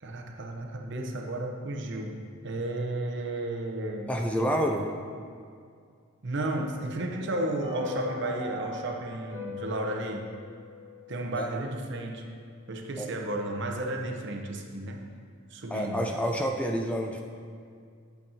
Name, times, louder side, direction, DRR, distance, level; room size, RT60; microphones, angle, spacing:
voice 1, 0.0-4.1 6.2-10.3 11.1-12.2 12.7-15.0 15.5-16.1, right 1 dB, 55° right, 2 dB, 0.8 m, -33 dB
voice 2, 4.1-4.9 11.3-11.5 13.0-13.1 15.7-17.2, equal, 5° left, 2 dB, 0.4 m, -28 dB
sound 1, 7.6-11.9 12.1-12.2, left 4 dB, 65° left, 2.0 m, -41 dB
8.7 x 8.2 x 2.8 m, 2.2 s
head